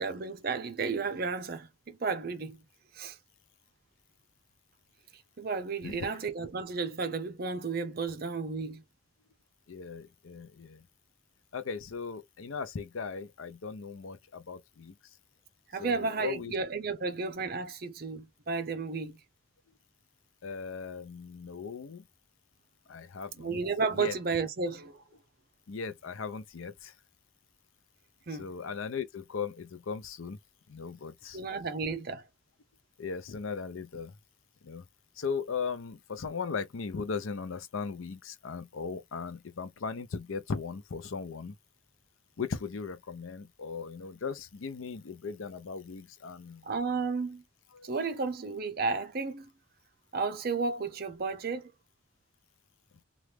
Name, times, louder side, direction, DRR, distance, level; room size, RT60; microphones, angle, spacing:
voice 1, 0.0-2.6 2.9-3.2 5.4-8.8 15.7-19.2 23.4-25.0 28.3-28.5 31.3-32.2 46.6-47.4 47.8-49.5 50.1-51.7, right 4 dB, 50° right, 0.5 m, -33 dB
voice 2, 5.8-6.2 9.7-10.8 11.5-14.9 15.8-16.5 20.4-22.0 22.9-23.6 24.0-24.1 25.7-26.9 28.4-30.4 30.7-31.4 33.0-34.1 34.6-34.8 35.2-41.5 42.4-46.6 47.7-48.0, left 5 dB, 80° left, 0.5 m, -38 dB
3.0 x 2.4 x 3.3 m
head